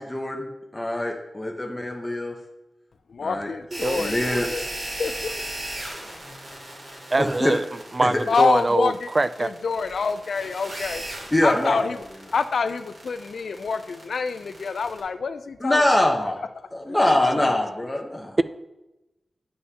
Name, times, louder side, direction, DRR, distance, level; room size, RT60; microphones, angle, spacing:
voice 1, 0.1-0.5 0.7-2.3 3.2-3.5 4.0-4.5 7.2-7.5 8.0-8.1 11.3-11.8 15.6-16.3 16.7-18.4, left 1 dB, 15° left, 0.8 m, -23 dB
voice 2, 3.1-4.7 5.0-5.5 8.3-9.1 9.4-11.0 11.4-17.0, left 5 dB, 80° left, 0.4 m, -27 dB
sound 1, 3.7-15.0, right 1 dB, 55° right, 2.4 m, -36 dB
voice 3, 7.1-7.6 7.9-9.5 17.4-17.5, right 2 dB, 35° right, 0.3 m, -23 dB
9.6 x 5.5 x 2.8 m
wide cardioid pair, 85°, 0 cm